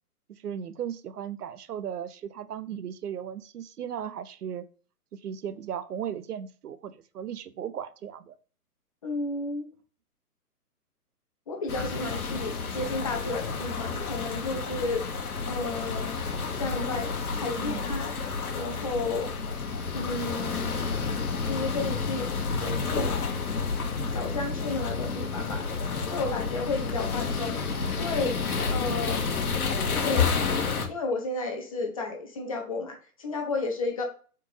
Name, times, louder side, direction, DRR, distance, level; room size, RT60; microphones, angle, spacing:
voice 1, 0.3-4.7 5.1-8.4 17.6-17.9, right 9 dB, 75° right, 14 dB, 0.6 m, -36 dB
voice 2, 9.0-9.7 11.5-15.0 15.5-16.2 16.5-18.1 18.5-19.3 19.9-20.8 21.5-22.3 22.6-23.2 24.1-25.7 26.1-27.6 28.0-28.4 28.7-29.2 29.9-30.2 30.9-34.0, left 3 dB, 25° left, 2 dB, 0.5 m, -32 dB
sound 1, 11.7-30.9, left 5 dB, 70° left, 1.0 m, -30 dB
4.3 x 2.5 x 3.2 m, 0.40 s
figure-of-eight pair, 130°, 46 cm